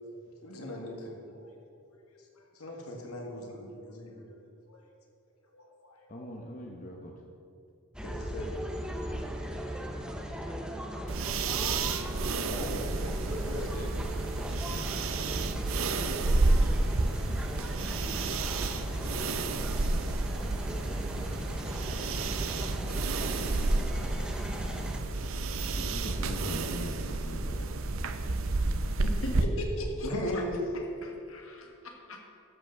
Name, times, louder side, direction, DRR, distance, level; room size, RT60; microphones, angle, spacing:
voice 1, 0.4-1.5 2.5-4.3 4.7-4.8 5.5-6.0 8.0-8.6 11.9-13.9 14.4-14.5 14.8-15.0 15.8-16.1 16.6-16.7 18.3-19.1 19.4-19.8 20.3-21.0 21.3-22.2 22.6-23.2 23.5-24.7 30.0-30.6, left 1 dB, 80° left, 1 dB, 1.8 m, -42 dB
voice 2, 6.1-7.1 10.1-10.4 25.7-27.7, left 1 dB, 35° left, 1 dB, 0.9 m, -41 dB
sound 1, 7.9-25.0, equal, 5° right, 0.7 m, -39 dB
sound 2, 11.1-29.4, right 2 dB, 65° right, 0.6 m, -30 dB
voice 3, 29.0-30.4 30.7-32.3, equal, 65° left, 2 dB, 1.7 m, -39 dB
13.0 x 5.8 x 6.5 m, 2.5 s
head